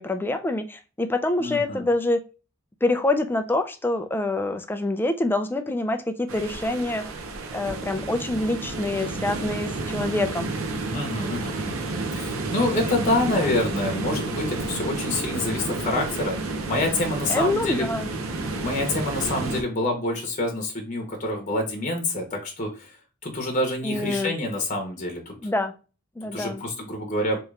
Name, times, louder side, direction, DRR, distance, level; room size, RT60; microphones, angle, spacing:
voice 1, 0.0-2.2 2.8-7.0 7.5-10.5 17.3-18.1 23.8-24.4 25.4-25.7 26.2-26.6, left 2 dB, 10° left, 0.3 m, -26 dB
voice 2, 1.4-1.9 10.9-11.8 12.2-17.9 18.3-25.3 26.3-27.4, left 2 dB, 35° left, 0.9 m, -27 dB
sound 1, 6.3-19.6, right 3 dB, 80° right, 0.7 m, -30 dB
3.6 x 3.0 x 3.2 m
head